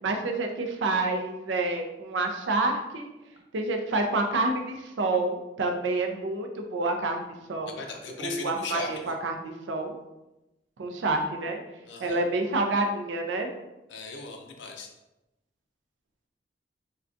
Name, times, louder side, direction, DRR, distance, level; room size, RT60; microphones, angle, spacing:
voice 1, 0.0-3.1 3.5-7.8 8.2-9.9 10.8-11.6 12.0-13.5, right 2 dB, 85° right, 4 dB, 0.5 m, -28 dB
voice 2, 7.7-9.2 11.9-12.2 13.9-14.9, left 4 dB, 80° left, 3 dB, 0.4 m, -37 dB
3.7 x 2.2 x 2.4 m, 0.96 s
head